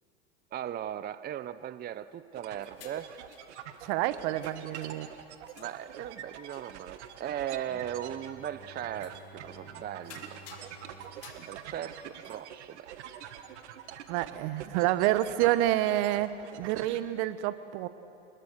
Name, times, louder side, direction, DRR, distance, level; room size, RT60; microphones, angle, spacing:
voice 1, 0.5-3.1 5.6-10.4 11.4-12.9, right 10 dB, 30° right, 14 dB, 0.6 m, -38 dB
sound 1, 2.3-17.0, right 10 dB, 80° right, 1.7 m, -45 dB
sound 2, 2.6-3.8 4.4-5.2 5.5-6.2 6.5-7.2 8.0-8.1 9.0-9.4 9.7-9.8 10.0-13.1, left 7 dB, 45° left, 3.3 m, -55 dB
voice 2, 3.8-5.1 14.1-16.3 16.6-17.9, right 14 dB, 65° right, 14 dB, 1.2 m, -28 dB
Bowed string instrument, 7.7-12.6, right 1 dB, 15° left, 2.2 m, -54 dB
29.5 x 20.5 x 6.6 m, 2.7 s
hypercardioid pair, 95°, 34 cm